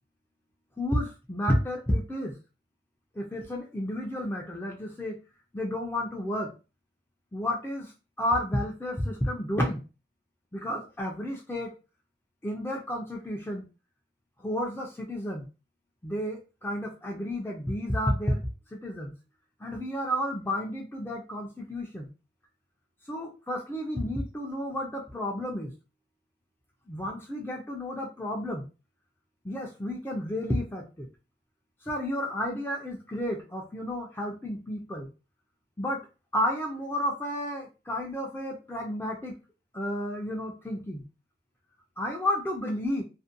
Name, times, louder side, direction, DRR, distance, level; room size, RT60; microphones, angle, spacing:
voice 1, 0.8-2.3 3.2-5.2 5.5-6.5 7.3-7.9 8.2-9.8 10.5-11.7 12.4-13.7 14.4-15.4 16.0-18.4 18.7-19.1 19.6-22.1 23.1-25.7 26.9-28.6 29.4-31.1 31.9-35.1 35.8-36.0 36.3-39.3 39.7-41.0 42.0-43.0, left 1 dB, 10° left, -1 dB, 0.4 m, -31 dB
2.5 x 2.1 x 2.5 m, 0.31 s
head